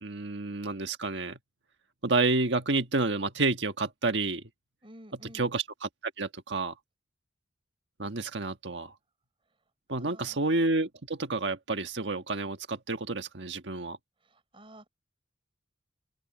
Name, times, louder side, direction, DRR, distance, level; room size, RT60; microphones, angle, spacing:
voice 1, 0.0-1.4 2.0-4.4 5.2-5.9 6.2-6.7 8.0-8.9 9.9-14.0, right 3 dB, 70° right, 1.5 m, -29 dB
voice 2, 4.8-5.5 10.0-10.4 14.2-14.9, right 1 dB, 30° right, 4.1 m, -51 dB
open air
head